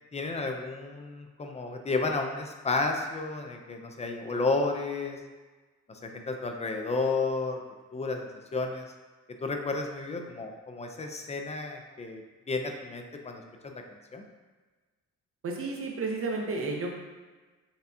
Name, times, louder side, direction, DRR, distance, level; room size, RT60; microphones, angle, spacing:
voice 1, 0.1-5.2 5.9-7.6 7.9-8.9 9.4-12.2 12.5-13.8 14.1-14.2, left 3 dB, 20° left, 4 dB, 0.5 m, -32 dB
voice 2, 15.4-16.9, right 3 dB, 45° right, 0 dB, 0.8 m, -32 dB
6.6 x 2.3 x 2.7 m, 1.3 s
cardioid pair, 90°, 30 cm